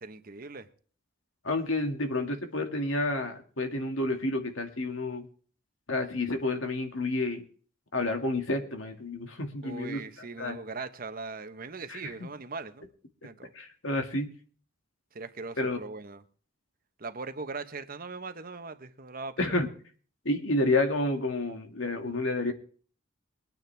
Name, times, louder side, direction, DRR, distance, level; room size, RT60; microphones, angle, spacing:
voice 1, 0.0-0.7 9.6-12.9 13.2-13.5 15.1-16.2 17.0-19.4, right 4 dB, 45° right, 1.1 m, -40 dB
voice 2, 1.4-5.3 5.9-7.4 7.9-10.0 10.4-10.6 11.9-12.0 13.5-14.3 15.6-15.8 19.4-19.7 20.2-22.5, left 2 dB, 85° left, 2.2 m, -29 dB
22.0 x 9.4 x 3.5 m
head